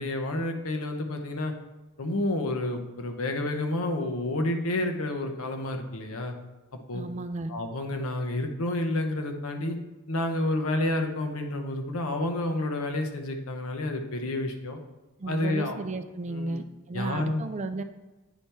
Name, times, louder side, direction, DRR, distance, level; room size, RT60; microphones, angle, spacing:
voice 1, 0.0-1.5 2.0-6.3 6.9-7.0 7.5-9.8 10.1-14.8 15.3-15.8 16.3-16.6 16.9-17.5, left 1 dB, 85° left, 5 dB, 0.8 m, -29 dB
voice 2, 6.9-7.5 15.2-17.8, right 2 dB, 35° right, 9 dB, 0.4 m, -34 dB
9.1 x 3.4 x 4.2 m, 1.1 s
head